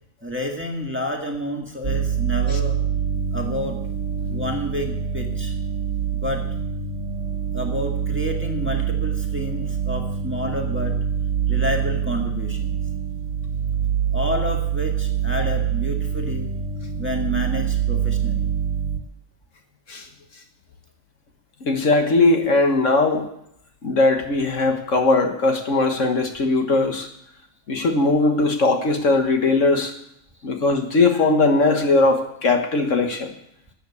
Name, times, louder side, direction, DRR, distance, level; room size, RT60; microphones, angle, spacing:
voice 1, 0.2-2.8 3.3-3.8 4.3-5.5 6.1-6.4 7.5-11.0 11.5-12.8 14.1-16.5 17.0-18.4, left 1 dB, 10° right, 1 dB, 1.8 m, -29 dB
sound 1, 1.8-19.0, right 8 dB, 75° right, 1.6 m, -25 dB
voice 2, 21.7-23.3 23.8-27.1 27.7-29.9 30.4-33.3, left 3 dB, 70° left, 5 dB, 1.8 m, -19 dB
13.0 x 8.0 x 8.4 m, 0.76 s
omnidirectional pair, 1.4 m